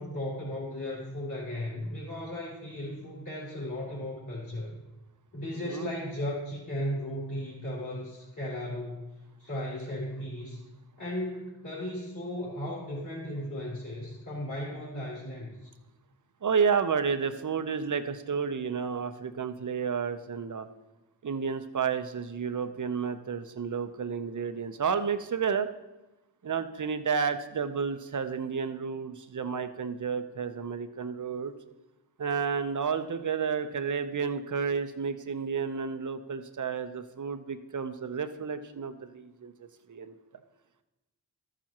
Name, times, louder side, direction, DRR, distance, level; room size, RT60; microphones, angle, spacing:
voice 1, 0.0-4.7 5.3-9.1 9.4-10.6 11.0-15.7, left 1 dB, 40° left, -7 dB, 3.5 m, -36 dB
voice 2, 5.6-5.9 16.4-20.7 21.2-25.7 26.4-31.5 32.2-39.5 39.9-40.2, right 6 dB, 40° right, 9 dB, 0.8 m, -31 dB
13.5 x 7.4 x 3.0 m, 1.0 s
cardioid pair, 45°, 45 cm